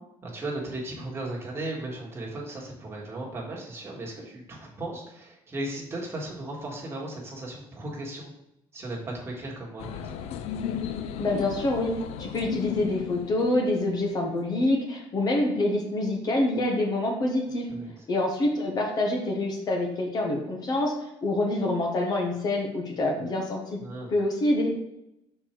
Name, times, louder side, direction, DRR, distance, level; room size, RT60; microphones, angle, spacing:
voice 1, 0.2-8.3 8.7-10.1 17.7-18.0 23.8-24.1, right 2 dB, 25° right, -3 dB, 1.6 m, -36 dB
sound 1, 9.8-14.2, left 9 dB, 75° left, 0.5 m, -34 dB
voice 2, 11.2-17.7 18.1-23.8 24.1-24.7, left 1 dB, 40° left, 1 dB, 1.2 m, -26 dB
6.1 x 4.5 x 4.5 m, 0.85 s
cardioid pair, 150°, 11 cm